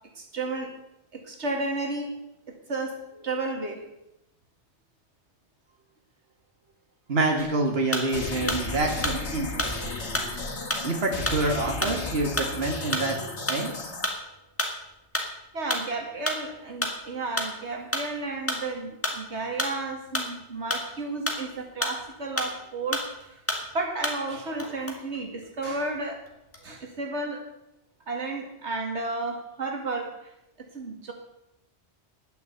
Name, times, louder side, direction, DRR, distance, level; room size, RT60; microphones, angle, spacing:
voice 1, 0.2-0.8 1.1-3.8 9.6-9.9 12.3-12.4 15.5-23.4 23.7-26.2 26.6-27.4 28.1-30.3 30.6-31.1, right 3 dB, 90° right, 3 dB, 2.3 m, -33 dB
voice 2, 7.1-10.4 10.8-13.2 13.5-13.7, right 2 dB, 65° right, 2 dB, 2.0 m, -27 dB
sound 1, 7.4-8.7 9.0-22.7 22.9-24.3 24.6-25.8 26.3-26.8, equal, 10° left, 2.0 m, -31 dB
sound 2, 8.1-14.1, left 3 dB, 85° left, 2.2 m, -34 dB
11.5 x 9.2 x 8.0 m, 0.86 s
omnidirectional pair, 1.1 m